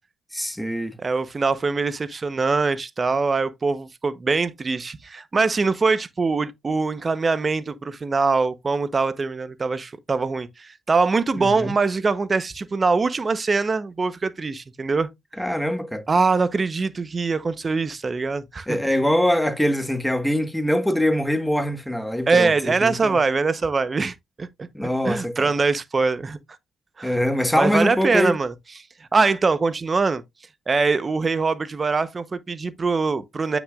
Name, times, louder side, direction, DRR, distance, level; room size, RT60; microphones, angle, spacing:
voice 1, 0.3-0.9 11.4-11.7 15.4-16.0 18.7-22.5 22.8-23.2 24.7-25.5 27.0-28.4, left 1 dB, 5° left, 1.4 m, -23 dB
voice 2, 1.0-15.1 16.1-18.8 22.3-24.5 25.0-26.4 27.0-27.2 27.5-28.5 29.1-30.2 30.7-33.6, right 4 dB, 35° right, 0.9 m, -23 dB
9.3 x 6.1 x 2.4 m
cardioid pair, 75°, 0 cm